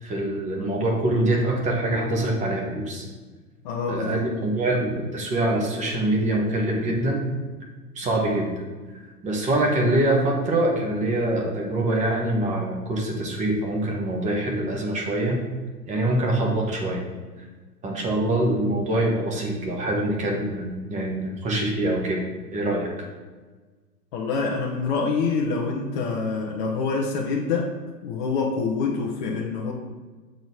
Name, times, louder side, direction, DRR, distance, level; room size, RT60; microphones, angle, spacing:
voice 1, 0.0-3.0 3.9-7.2 7.9-8.5 9.2-15.4 15.9-17.0 17.8-22.2 22.5-22.9, right 1 dB, 15° right, 0 dB, 1.1 m, -24 dB
voice 2, 3.6-4.3 8.0-8.1 24.1-27.7 28.0-29.7, left 4 dB, 30° left, -2 dB, 0.7 m, -26 dB
6.4 x 3.9 x 6.3 m, 1.4 s
figure-of-eight pair, 110°, 48 cm